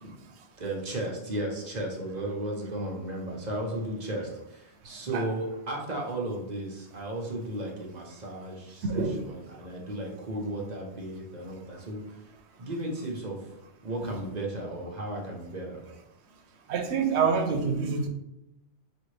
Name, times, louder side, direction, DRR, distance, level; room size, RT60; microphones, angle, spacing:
voice 1, 0.6-12.0 12.6-13.5 13.8-15.8, right 1 dB, 45° right, -1 dB, 0.9 m, -34 dB
voice 2, 8.8-9.2 16.7-18.1, right 5 dB, 80° right, 6 dB, 0.9 m, -26 dB
5.3 x 2.5 x 3.2 m, 0.87 s
omnidirectional pair, 1.1 m